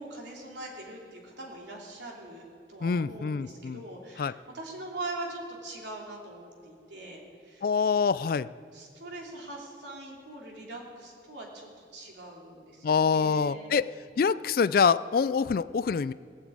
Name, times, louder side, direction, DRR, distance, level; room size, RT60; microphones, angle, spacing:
voice 1, 0.0-7.6 8.7-13.7, right 2 dB, 70° right, -1 dB, 3.0 m, -42 dB
voice 2, 2.8-3.8 4.2-4.3 7.6-8.5 12.8-13.9 14.2-16.1, left 5 dB, 50° left, 17 dB, 0.3 m, -25 dB
19.0 x 7.3 x 8.4 m, 2.4 s
head